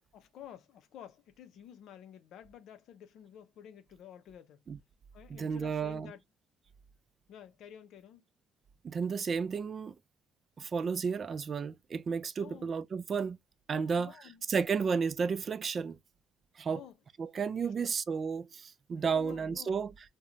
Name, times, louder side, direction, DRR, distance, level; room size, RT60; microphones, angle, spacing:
voice 1, 0.1-4.6 5.1-6.2 7.3-8.2 12.4-12.7 13.7-14.4 16.7-17.0 17.6-17.9 18.9-19.8, left 10 dB, 70° left, 0.5 m, -51 dB
voice 2, 5.3-6.1 8.8-9.9 10.6-13.4 13.7-14.1 14.5-16.0 16.6-16.8 17.2-19.9, right 5 dB, 45° right, 0.3 m, -32 dB
2.4 x 2.1 x 3.0 m
supercardioid pair, 70°, 0 cm